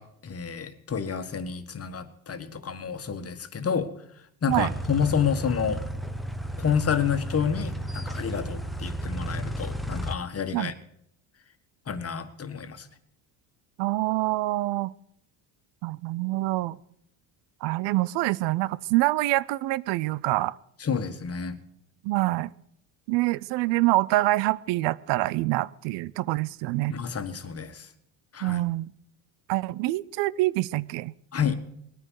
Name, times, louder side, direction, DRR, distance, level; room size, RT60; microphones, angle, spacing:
voice 1, 0.0-3.9 4.4-5.8 6.6-10.7 11.9-12.9 20.8-21.6 26.9-27.9 28.3-28.6 31.3-31.6, left 7 dB, 30° left, 10 dB, 1.7 m, -29 dB
sound 1, 4.5-10.1, equal, ahead, 1.1 m, -33 dB
voice 2, 13.8-14.9 15.8-16.8 17.6-20.5 22.0-22.5 23.1-27.0 28.4-28.9 29.5-31.1, right 18 dB, 75° right, 20 dB, 0.7 m, -26 dB
20.5 x 9.9 x 6.4 m, 0.71 s
cardioid pair, 100°, 44 cm